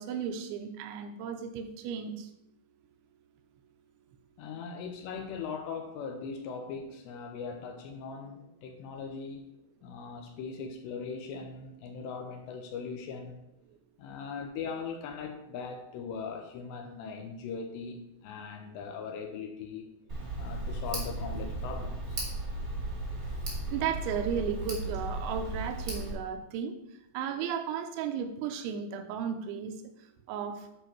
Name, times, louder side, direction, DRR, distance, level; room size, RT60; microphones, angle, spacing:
voice 1, 0.0-2.3 23.7-26.7 27.1-29.8 30.3-30.6, right 7 dB, 85° right, 7 dB, 3.0 m, -34 dB
voice 2, 4.4-9.5 9.8-13.5 14.0-19.9 20.4-22.2, left 5 dB, 80° left, 4 dB, 2.7 m, -40 dB
Tick, 20.1-26.1, right 2 dB, 40° right, 1.2 m, -35 dB
10.0 x 4.5 x 4.5 m, 0.82 s
omnidirectional pair, 5.4 m